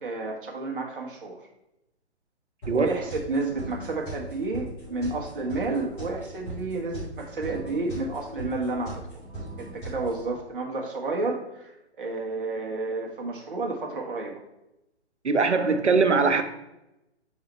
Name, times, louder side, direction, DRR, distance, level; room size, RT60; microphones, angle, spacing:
voice 1, 0.0-1.4 2.7-9.2 9.6-11.7 12.0-14.4, right 3 dB, 50° right, 1.4 m, -31 dB
sound 1, 2.6-10.3, right 2 dB, 5° left, 0.3 m, -39 dB
voice 2, 2.7-3.0 15.2-16.4, right 4 dB, 85° right, 0.7 m, -21 dB
6.5 x 4.7 x 3.1 m
figure-of-eight pair, 130°, 34 cm